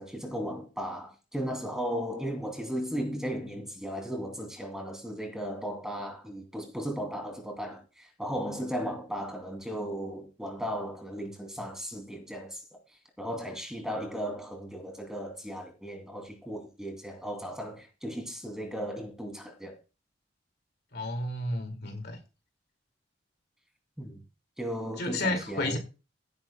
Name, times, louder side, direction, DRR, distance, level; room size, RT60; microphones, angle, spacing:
voice 1, 0.0-12.6 13.2-19.8 24.0-24.2 24.6-25.8, equal, 5° right, 2.8 m, -36 dB
voice 2, 20.9-22.2 25.0-25.8, left 1 dB, 60° left, 2.3 m, -31 dB
17.0 x 9.6 x 2.3 m
head